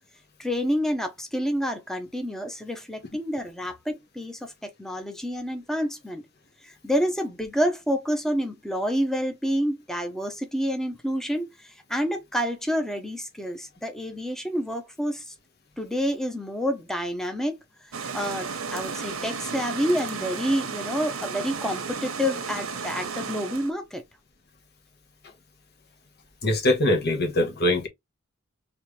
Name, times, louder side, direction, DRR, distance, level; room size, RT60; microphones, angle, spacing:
voice 1, 0.4-6.2 6.6-15.3 15.8-17.6 18.1-24.0, equal, ahead, 0.8 m, -28 dB
sound 1, 17.9-23.7, right 5 dB, 80° right, 1.0 m, -33 dB
voice 2, 26.4-27.9, left 1 dB, 50° left, 1.3 m, -22 dB
4.4 x 3.2 x 3.2 m
head